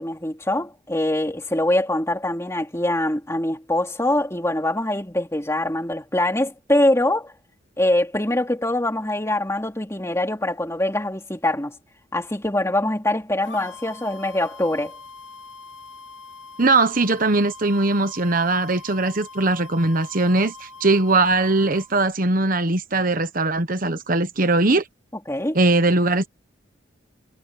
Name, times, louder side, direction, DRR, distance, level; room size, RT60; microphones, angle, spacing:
voice 1, 0.0-7.3 7.8-11.8 12.1-15.0 25.3-25.6, left 1 dB, 15° left, 2.8 m, -23 dB
sound 1, 13.4-22.1, left 3 dB, 75° left, 3.0 m, -43 dB
voice 2, 16.6-24.8 25.5-26.3, right 2 dB, 45° right, 1.2 m, -20 dB
head